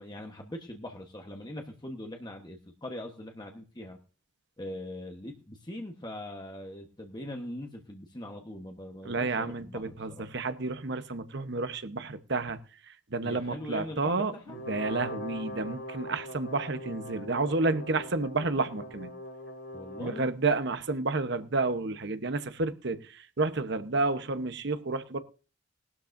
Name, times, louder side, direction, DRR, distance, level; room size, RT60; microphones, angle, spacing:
voice 1, 0.0-4.0 4.6-10.3 13.2-14.6 19.7-20.3, left 1 dB, 20° left, 2 dB, 1.1 m, -41 dB
voice 2, 9.0-12.6 13.1-14.3 14.7-19.1 20.0-23.0 23.4-25.2, right 3 dB, 60° right, 10 dB, 1.0 m, -30 dB
Brass instrument, 14.5-20.3, left 1 dB, 60° left, 5.4 m, -41 dB
19.5 x 12.5 x 2.6 m, 0.37 s
head